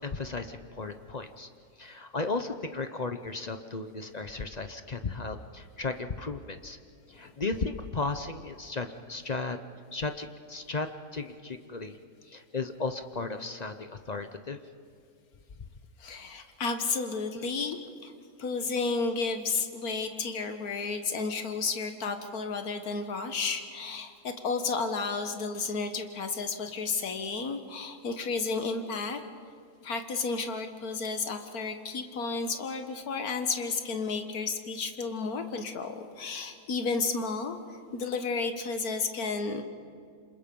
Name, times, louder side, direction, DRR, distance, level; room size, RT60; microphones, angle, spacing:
voice 1, 0.0-1.5 1.8-6.8 7.1-9.6 9.9-12.0 12.2-14.6, left 3 dB, 35° left, 8 dB, 0.8 m, -35 dB
voice 2, 16.0-17.8 18.0-18.1 18.4-29.2 29.8-39.6, left 4 dB, 80° left, 7 dB, 1.9 m, -32 dB
28.0 x 26.0 x 5.4 m, 2.3 s
omnidirectional pair, 1.5 m